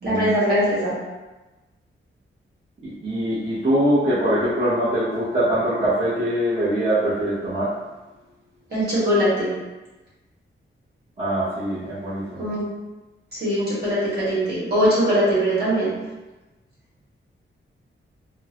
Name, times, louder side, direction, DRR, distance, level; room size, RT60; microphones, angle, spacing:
voice 1, 0.0-0.9 8.7-9.5 12.4-12.6 13.3-15.9, equal, 50° right, -9 dB, 1.5 m, -21 dB
voice 2, 2.8-7.7 11.2-12.4, right 1 dB, 30° right, -13 dB, 0.9 m, -23 dB
3.6 x 2.1 x 2.8 m, 1.1 s
wide cardioid pair, 155°, 21 cm